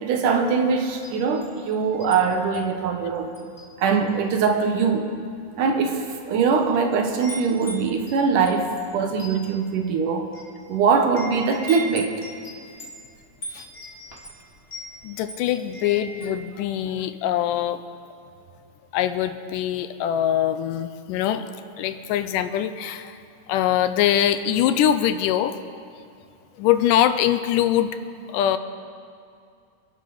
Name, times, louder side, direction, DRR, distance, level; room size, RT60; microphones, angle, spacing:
voice 1, 0.0-3.3 3.8-5.1 5.6-10.3 10.7-12.1, right 5 dB, 75° right, 4 dB, 2.7 m, -22 dB
Wind chime, 1.0-2.2 2.5-2.8 3.3-4.1 4.4-4.7 5.4-5.5 6.2-6.6 6.9-16.4, right 1 dB, 20° left, 2.5 m, -40 dB
voice 2, 15.0-17.8 18.9-21.5 21.8-23.2 23.5-25.5 26.6-27.9 28.3-28.6, left 11 dB, 85° left, 10 dB, 2.3 m, -23 dB
26.5 x 11.0 x 4.0 m, 2.4 s
omnidirectional pair, 3.8 m